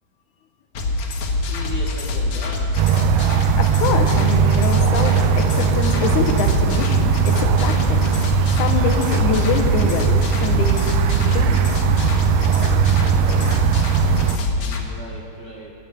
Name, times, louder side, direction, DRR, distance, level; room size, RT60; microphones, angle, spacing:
sound 1, 0.7-14.8, left 2 dB, 60° left, 1.7 m, -24 dB
voice 1, 1.4-2.8 14.0-15.7, right 1 dB, 65° right, -2 dB, 1.0 m, -37 dB
sound 2, 2.7-14.4, right 8 dB, 85° right, 1.4 m, -19 dB
voice 2, 3.6-8.1 8.6-10.9 11.2-11.6, left 6 dB, 85° left, 6 dB, 2.3 m, -25 dB
15.5 x 5.4 x 8.8 m, 2.9 s
omnidirectional pair, 3.4 m